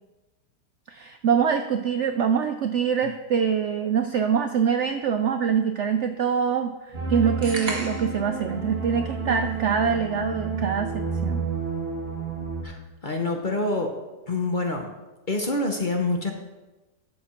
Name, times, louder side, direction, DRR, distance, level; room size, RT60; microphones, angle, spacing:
voice 1, 0.9-11.4, right 7 dB, 85° right, 7 dB, 0.6 m, -24 dB
sound 1, 6.9-12.6, right 4 dB, 40° right, 1.5 m, -30 dB
sound 2, 7.4-8.2, right 3 dB, 55° right, 1.9 m, -33 dB
voice 2, 12.6-14.0 14.3-14.9 15.3-16.3, left 2 dB, 40° left, 3 dB, 0.8 m, -26 dB
12.0 x 6.8 x 4.4 m, 1.1 s
omnidirectional pair, 1.9 m